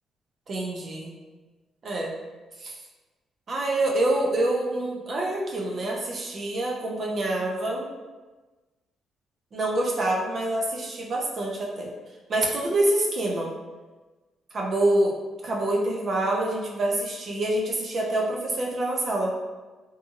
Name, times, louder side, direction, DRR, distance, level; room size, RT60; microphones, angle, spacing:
voice 1, 0.5-1.1 1.8-2.1 2.6-2.7 3.5-7.9 9.5-11.9 12.3-13.5 14.5-15.1 15.4-19.3, right 1 dB, 50° right, -2 dB, 0.5 m, -26 dB
2.7 x 2.5 x 2.5 m, 1.2 s
cardioid pair, 90°, 0 cm